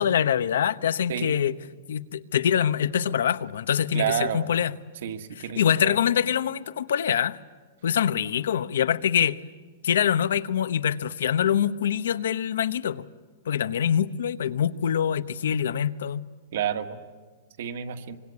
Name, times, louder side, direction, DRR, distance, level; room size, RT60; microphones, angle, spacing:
voice 1, 0.0-1.5 1.9-4.7 5.4-7.4 7.8-9.4 9.8-13.0 13.5-16.2, left 9 dB, 85° left, 1.0 m, -24 dB
voice 2, 1.1-1.6 3.9-4.5 5.0-6.0 15.1-15.2 16.5-17.0 17.6-18.2, right 9 dB, 55° right, 1.9 m, -30 dB
25.0 x 23.5 x 9.7 m
supercardioid pair, 175°, 0 cm